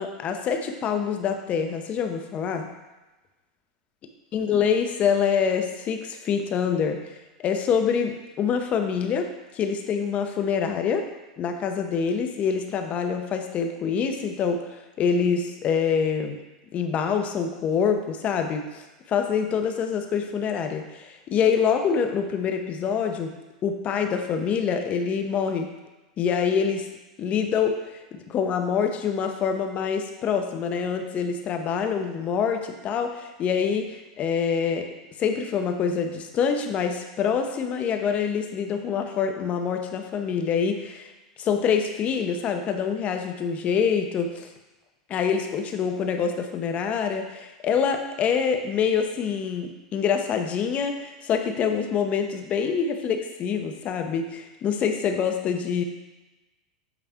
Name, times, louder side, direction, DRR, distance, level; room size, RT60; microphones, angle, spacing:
voice 1, 0.0-2.7 4.3-7.0 7.4-11.1 11.4-16.4 16.7-23.3 23.6-25.7 26.2-26.9 27.2-27.8 28.1-34.9 35.2-41.1 41.4-44.5 45.1-55.8, left 6 dB, 35° left, 6 dB, 0.7 m, -25 dB
8.0 x 3.4 x 3.6 m, 1.1 s
hypercardioid pair, 105°, 4 cm